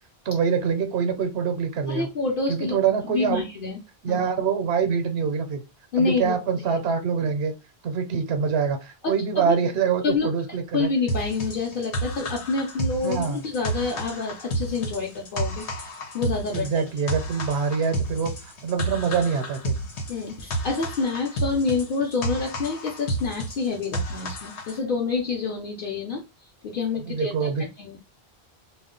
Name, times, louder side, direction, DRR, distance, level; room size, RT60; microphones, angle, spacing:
voice 1, 0.3-2.1 2.5-3.4 4.0-5.6 6.0-7.5 7.8-10.9 13.0-13.4 16.5-19.7 27.1-27.6, right 6 dB, 85° right, 7 dB, 0.9 m, -25 dB
voice 2, 1.9-2.8 3.1-3.8 4.1-4.2 5.9-6.4 9.0-9.6 10.0-10.3 10.7-16.8 20.1-26.2 26.6-28.0, left 4 dB, 60° left, -1 dB, 0.8 m, -27 dB
sound 1, 11.1-24.8, right 1 dB, 90° left, 1.0 m, -31 dB
2.3 x 2.1 x 3.6 m, 0.25 s
omnidirectional pair, 1.1 m